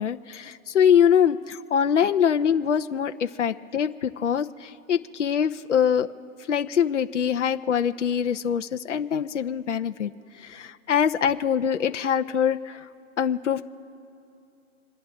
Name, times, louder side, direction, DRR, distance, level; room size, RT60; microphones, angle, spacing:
voice 1, 0.0-6.1 6.5-10.1 10.4-12.8 13.2-13.6, left 8 dB, 55° left, 7 dB, 1.0 m, -23 dB
28.0 x 11.0 x 3.6 m, 2.7 s
hypercardioid pair, 165°, 43 cm